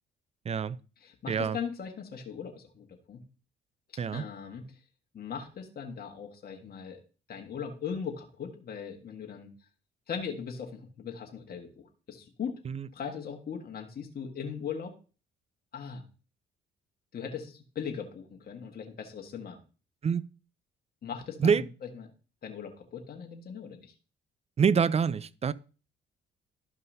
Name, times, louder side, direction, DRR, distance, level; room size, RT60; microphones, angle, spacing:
voice 1, 0.5-0.8 1.3-1.6 4.0-4.2 12.7-12.9 20.0-20.2 21.4-21.6 24.6-25.5, right 6 dB, 35° right, 0.4 m, -26 dB
voice 2, 1.0-3.2 4.1-4.8 5.1-7.0 7.3-9.5 10.1-12.6 12.9-14.9 15.7-16.0 17.1-19.6 21.0-21.6 21.9-22.1 22.4-23.9, left 7 dB, 50° left, 1.5 m, -39 dB
13.0 x 5.4 x 2.7 m
cardioid pair, 90°, 20 cm